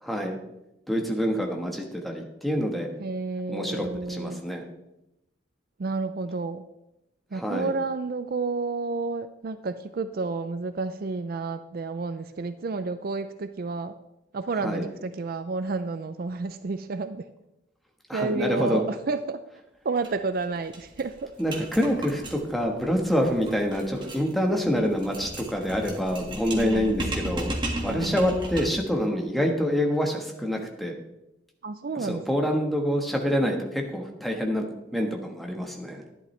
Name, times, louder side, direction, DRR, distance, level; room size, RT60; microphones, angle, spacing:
voice 1, 0.0-0.4 0.9-2.9 3.5-4.6 7.3-7.7 14.6-14.8 18.1-18.8 21.4-27.6 27.8-30.9 31.9-36.0, equal, ahead, 1 dB, 1.3 m, -26 dB
voice 2, 3.0-4.5 5.8-6.6 7.3-14.0 14.3-17.3 18.1-19.4 19.8-21.3 26.5-26.9 27.8-28.2 31.6-32.2, right 3 dB, 50° right, 11 dB, 0.4 m, -30 dB
sound 1, 20.0-20.1 20.4-20.5 20.7-28.9, right 1 dB, 25° right, 1.9 m, -35 dB
12.0 x 11.0 x 3.3 m, 0.90 s
head